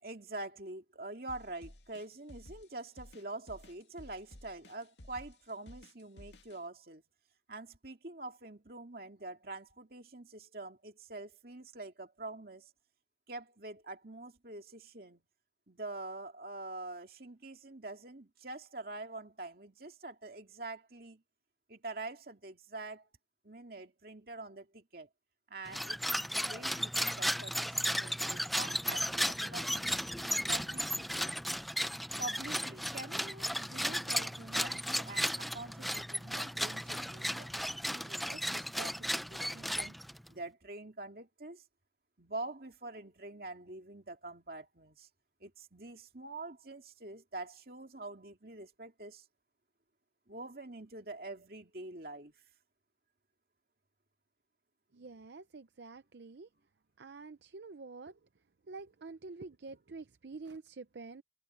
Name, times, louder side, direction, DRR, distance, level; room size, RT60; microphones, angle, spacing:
voice 1, 0.0-7.0 7.5-12.7 13.3-15.2 15.7-21.2 21.7-23.1 23.4-25.1 25.5-30.0 30.5-31.3 32.2-40.0 40.3-41.6 42.2-45.1 45.4-49.2 50.3-52.4, right 2 dB, 55° right, 2.6 m, -45 dB
sound 1, 1.3-6.6, left 1 dB, 75° left, 2.1 m, -54 dB
sound 2, 25.7-40.3, equal, ahead, 0.4 m, -35 dB
voice 2, 54.9-56.5 57.0-58.2 58.7-61.2, right 3 dB, 70° right, 0.6 m, -47 dB
head